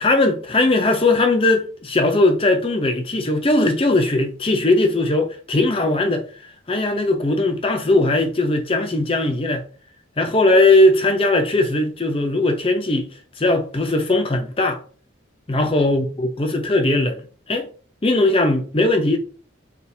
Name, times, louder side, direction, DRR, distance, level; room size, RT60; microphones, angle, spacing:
voice 1, 0.0-6.2 6.7-9.6 10.2-14.8 15.5-17.2 17.5-17.7 18.0-19.2, left 2 dB, 30° left, 0.6 m, -19 dB
4.3 x 3.5 x 2.7 m
head